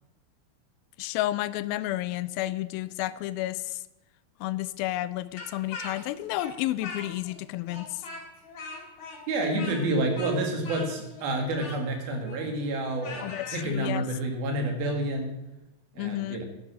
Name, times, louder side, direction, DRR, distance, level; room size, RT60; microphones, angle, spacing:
voice 1, 1.0-3.6 4.4-7.9 9.5-9.8 13.2-14.1 16.0-16.4, left 15 dB, 85° left, 16 dB, 2.4 m, -31 dB
Speech, 5.4-7.4 7.7-13.7, left 3 dB, 55° left, 3.8 m, -41 dB
voice 2, 9.3-15.3 16.0-16.4, right 1 dB, 85° right, 3 dB, 3.9 m, -29 dB
11.5 x 10.5 x 6.2 m, 0.92 s
omnidirectional pair, 4.2 m